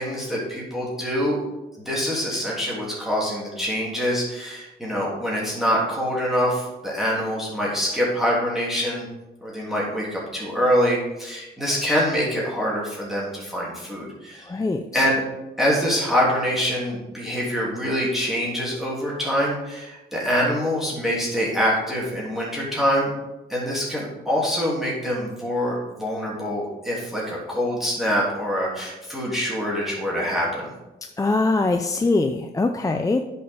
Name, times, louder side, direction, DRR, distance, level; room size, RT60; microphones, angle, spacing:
voice 1, 0.0-1.4 1.8-9.1 9.4-14.5 14.9-15.2 15.6-23.1 23.5-30.7, equal, ahead, -6 dB, 3.1 m, -25 dB
voice 2, 14.4-15.1 31.2-33.2, left 3 dB, 15° left, 5 dB, 0.5 m, -22 dB
8.5 x 5.5 x 5.3 m, 1.0 s
cardioid pair, 90°, 20 cm